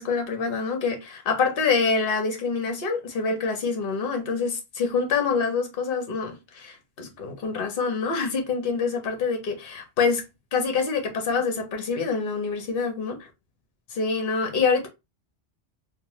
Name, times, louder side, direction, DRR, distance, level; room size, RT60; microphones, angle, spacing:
voice 1, 0.0-10.3 10.5-13.2 13.9-14.9, left 5 dB, 60° left, 1.0 m, -26 dB
2.9 x 2.2 x 2.9 m
omnidirectional pair, 1.1 m